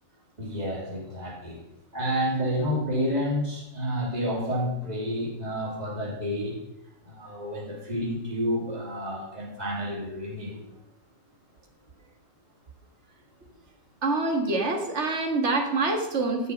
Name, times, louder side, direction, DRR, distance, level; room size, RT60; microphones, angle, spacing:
voice 1, 0.4-1.6 1.9-6.6 7.0-10.6, equal, 30° right, -4 dB, 3.2 m, -30 dB
voice 2, 14.0-16.5, right 3 dB, 60° right, 3 dB, 2.0 m, -26 dB
14.5 x 6.9 x 5.2 m, 0.85 s
omnidirectional pair, 1.3 m